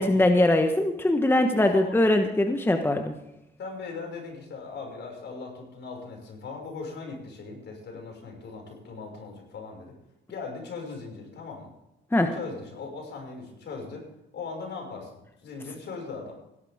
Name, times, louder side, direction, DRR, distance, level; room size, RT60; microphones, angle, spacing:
voice 1, 0.0-3.1 12.1-12.3, left 1 dB, 10° left, 5 dB, 1.2 m, -22 dB
voice 2, 1.5-2.0 3.6-9.9 10.3-11.7 12.3-14.1 14.3-15.1 15.4-16.4, left 4 dB, 65° left, 1 dB, 6.1 m, -39 dB
17.0 x 12.0 x 3.7 m, 0.87 s
cardioid pair, 90°, 20 cm